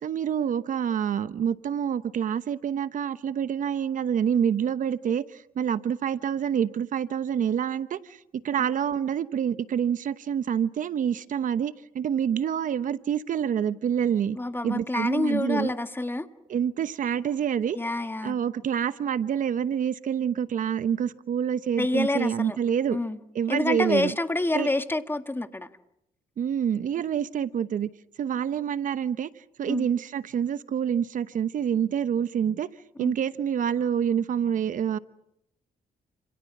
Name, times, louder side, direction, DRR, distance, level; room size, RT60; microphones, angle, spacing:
voice 1, 0.0-14.4 14.6-15.7 16.5-17.8 18.2-23.0 23.3-24.1 24.5-24.7 26.4-27.9 28.2-29.3 29.6-32.7 33.0-35.0, right 8 dB, 60° right, 14 dB, 1.0 m, -27 dB
voice 2, 14.3-16.3 17.7-18.4 21.8-22.6 22.9-23.2 23.5-25.7 29.7-29.9 33.0-33.1, left 2 dB, 15° left, 9 dB, 1.8 m, -27 dB
29.5 x 27.5 x 6.1 m, 0.79 s
cardioid pair, 110°, 15 cm